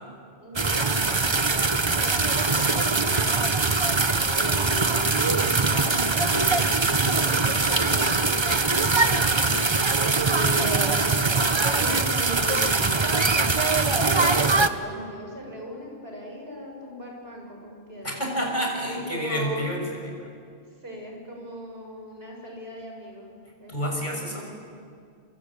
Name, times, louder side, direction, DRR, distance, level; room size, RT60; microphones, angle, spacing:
voice 1, 0.4-5.3 5.7-9.2 10.2-11.1 11.6-13.1 14.2-18.2 18.9-19.6 20.8-24.3, equal, 65° right, 0 dB, 6.9 m, -39 dB
sound 1, 0.6-14.7, right 3 dB, 25° right, 0.9 m, -22 dB
voice 2, 18.0-20.3 23.7-24.6, equal, 45° left, 0 dB, 6.4 m, -29 dB
27.0 x 25.0 x 8.7 m, 2.3 s
omnidirectional pair, 1.1 m